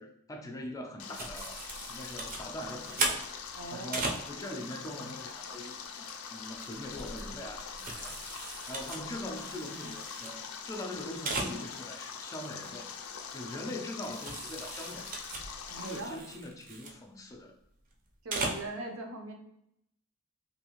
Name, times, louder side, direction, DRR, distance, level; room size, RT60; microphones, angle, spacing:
voice 1, 0.0-1.6 1.9-3.2 3.7-5.8 6.3-8.3 8.7-12.9 13.3-15.2 15.8-17.6, left 1 dB, 15° left, 2 dB, 0.3 m, -42 dB
Stream, 1.0-16.0, left 6 dB, 85° left, 0.4 m, -43 dB
sound 1, 1.1-4.2 5.8-6.1 6.5-10.4 10.6-10.7 10.9-11.0 11.3-11.5 13.2-13.3 14.0-16.9 18.1-18.6, right 3 dB, 45° right, 0.5 m, -38 dB
voice 2, 3.5-4.0 9.0-9.1 15.7-16.2 18.2-19.3, right 2 dB, 85° right, 2 dB, 0.6 m, -40 dB
2.6 x 2.4 x 2.9 m, 0.76 s
head